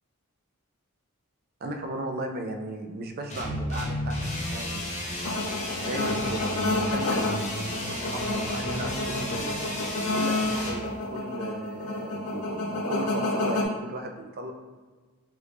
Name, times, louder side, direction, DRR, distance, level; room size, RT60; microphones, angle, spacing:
voice 1, 1.6-5.3 5.8-9.8 10.2-14.5, right 1 dB, 45° right, 4 dB, 0.3 m, -36 dB
sound 1, 3.3-10.8, left 1 dB, 30° left, 0.5 m, -33 dB
sound 2, 5.2-13.6, left 2 dB, 80° left, 0.5 m, -30 dB
3.0 x 2.6 x 3.3 m, 1.4 s
head